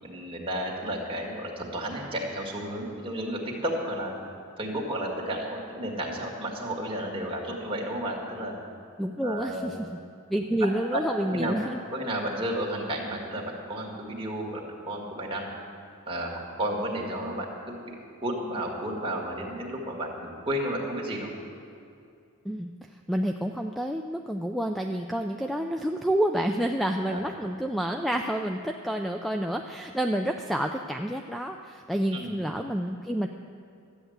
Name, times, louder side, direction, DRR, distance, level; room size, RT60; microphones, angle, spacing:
voice 1, 0.0-4.1 4.6-8.5 9.2-9.8 10.5-11.0 11.3-11.6 11.9-15.5 16.1-21.3 27.1-27.2 32.1-32.3, right 1 dB, 25° right, -2 dB, 2.1 m, -32 dB
voice 2, 9.0-9.8 10.3-11.8 22.4-22.7 23.1-33.3, right 1 dB, ahead, 4 dB, 0.4 m, -29 dB
13.0 x 9.0 x 8.0 m, 2.5 s
head